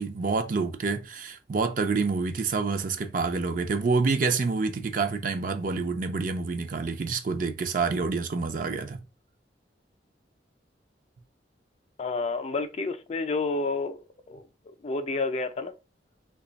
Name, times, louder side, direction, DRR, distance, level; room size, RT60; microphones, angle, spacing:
voice 1, 0.0-9.0, right 4 dB, 50° right, 0.4 m, -27 dB
voice 2, 12.0-14.0 14.3-14.4 14.8-15.7, left 3 dB, 35° left, 0.4 m, -29 dB
3.1 x 2.3 x 3.9 m
head